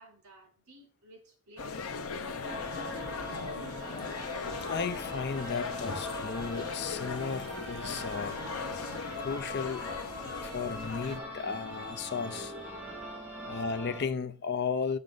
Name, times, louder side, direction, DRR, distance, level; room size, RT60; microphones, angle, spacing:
voice 1, 0.0-1.8 12.9-13.6, right 1 dB, 75° right, 3.6 m, -58 dB
sound 1, 1.6-11.2, left 4 dB, 80° left, 0.8 m, -38 dB
sound 2, 2.4-14.1, equal, 10° right, 2.2 m, -42 dB
sound 3, 3.7-12.5, left 3 dB, 20° left, 1.0 m, -50 dB
voice 2, 4.6-8.4 9.2-9.9 10.4-12.5 13.4-15.0, left 5 dB, 50° left, 0.5 m, -34 dB
6.7 x 6.4 x 3.9 m
head